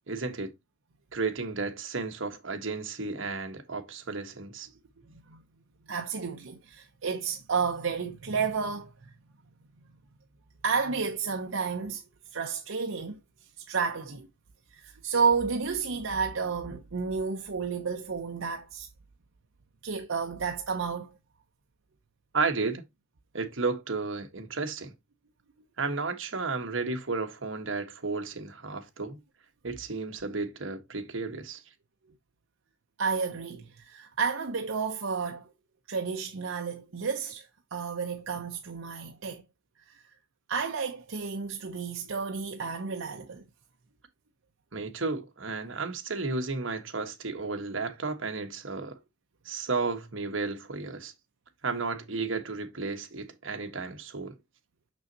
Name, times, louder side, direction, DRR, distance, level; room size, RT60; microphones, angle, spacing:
voice 1, 0.1-0.5 1.1-4.7 22.3-22.8 23.3-24.9 25.8-29.2 29.6-31.6 44.7-49.0 49.4-51.1 51.6-54.4, right 3 dB, 70° right, 1.4 m, -33 dB
voice 2, 5.0-5.4 5.9-9.1 10.6-12.0 12.3-13.2 13.6-14.3 14.7-18.9 19.8-21.2 33.0-35.5 35.9-39.4 39.9-40.1 40.5-43.4, right 5 dB, 85° right, 0.8 m, -31 dB
6.3 x 6.2 x 2.8 m
head